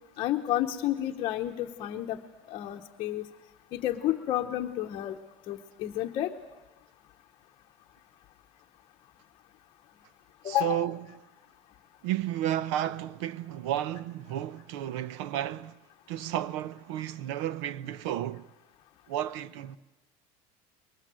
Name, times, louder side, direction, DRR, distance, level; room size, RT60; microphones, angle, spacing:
voice 1, 0.2-2.2 2.5-3.3 3.7-5.2 5.5-6.3 10.4-10.9, left 13 dB, 35° left, 1.0 m, -30 dB
voice 2, 10.4-11.0 12.0-15.8 16.1-18.4 19.1-19.8, right 12 dB, 85° right, 0.8 m, -32 dB
29.5 x 22.5 x 7.7 m
cardioid pair, 175°, 15 cm